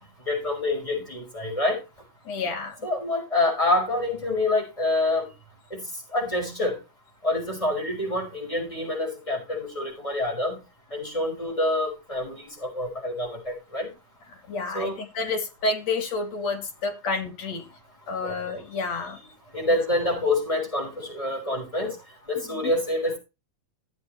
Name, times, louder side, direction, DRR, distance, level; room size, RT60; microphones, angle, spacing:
voice 1, 0.3-1.8 2.8-5.3 5.7-5.8 6.1-6.8 7.2-10.6 10.9-13.9 14.7-15.0 18.2-18.4 19.5-22.0 22.3-23.2, left 2 dB, 10° left, 5.9 m, -27 dB
voice 2, 2.3-2.8 14.5-17.6 18.1-19.3 22.5-22.7, left 3 dB, 50° left, 3.9 m, -29 dB
16.5 x 8.2 x 3.2 m
omnidirectional pair, 3.9 m